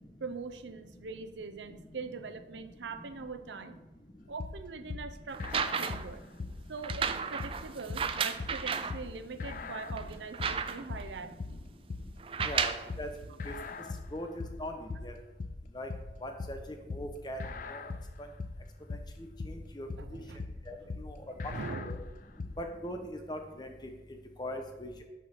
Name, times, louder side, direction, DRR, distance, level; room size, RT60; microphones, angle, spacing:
voice 1, 0.2-3.8 4.3-6.2 6.7-11.6 20.0-20.5 20.8-20.9 21.4-21.9, right 4 dB, 90° right, 10 dB, 0.6 m, -42 dB
sound 1, 4.4-22.6, left 3 dB, 45° left, 0.4 m, -40 dB
sound 2, 5.3-6.2 6.8-9.0 9.6-9.7 10.0-11.0 12.2-12.9 13.9-14.0, right 6 dB, 30° right, 0.3 m, -33 dB
voice 2, 14.1-15.1 15.7-15.9 16.2-16.6 16.9-17.4 17.7-17.8 19.5-20.2 20.7-21.1 21.8-22.0 22.6-23.7 24.4-24.9, left 1 dB, 25° left, 4 dB, 0.8 m, -40 dB
6.3 x 5.5 x 5.7 m, 1.1 s
head